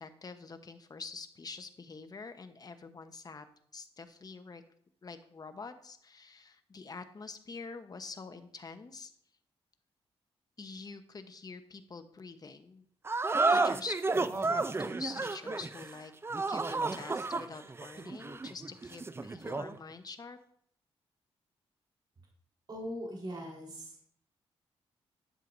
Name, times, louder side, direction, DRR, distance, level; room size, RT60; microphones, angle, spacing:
voice 1, 0.0-3.4 3.7-4.6 5.0-9.1 10.6-12.8 13.5-16.1 16.5-20.4, left 4 dB, 35° left, 8 dB, 1.0 m, -46 dB
sound 1, 13.0-19.8, right 3 dB, 20° right, 0.5 m, -32 dB
voice 2, 22.7-24.1, equal, 40° right, -2 dB, 4.1 m, -41 dB
11.0 x 7.6 x 2.7 m, 0.64 s
cardioid pair, 70°, 11 cm